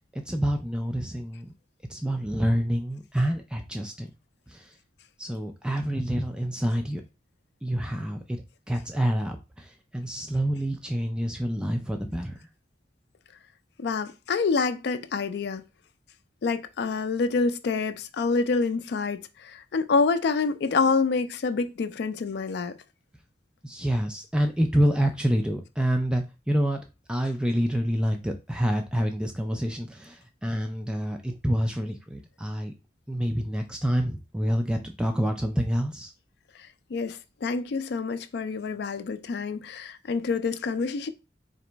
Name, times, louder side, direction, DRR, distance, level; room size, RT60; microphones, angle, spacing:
voice 1, 0.0-1.5 1.9-4.1 4.5-4.7 5.2-7.0 7.6-8.4 8.7-12.4 23.6-26.8 27.1-32.7 33.1-36.1, equal, 5° right, 0.4 m, -27 dB
voice 2, 13.8-15.6 16.4-22.8 36.9-41.1, left 4 dB, 65° left, 0.4 m, -27 dB
3.9 x 2.9 x 3.3 m
head